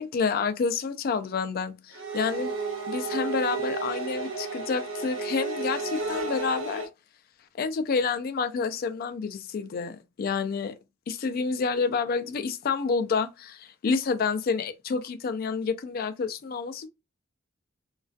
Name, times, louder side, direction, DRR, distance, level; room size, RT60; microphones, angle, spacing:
voice 1, 0.0-2.5 2.9-6.8 7.6-10.7 11.1-16.9, left 5 dB, 45° left, 0.3 m, -29 dB
sound 1, 1.9-6.9, right 3 dB, 70° right, 0.9 m, -32 dB
2.3 x 2.3 x 2.4 m
head